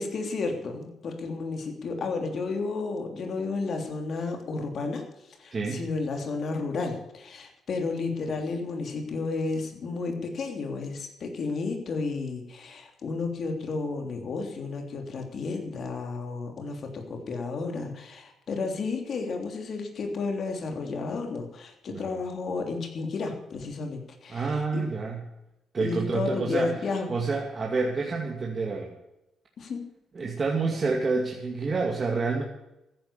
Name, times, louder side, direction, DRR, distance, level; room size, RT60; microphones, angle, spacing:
voice 1, 0.0-5.0 5.4-24.8 25.8-27.1 29.6-29.8, left 3 dB, 55° left, 4 dB, 3.2 m, -32 dB
voice 2, 5.5-5.8 21.9-22.2 24.3-25.2 25.7-26.7 27.1-28.9 30.1-32.4, right 4 dB, 35° right, 0 dB, 2.4 m, -28 dB
14.0 x 10.5 x 7.0 m, 0.90 s
cardioid pair, 90°, 0 cm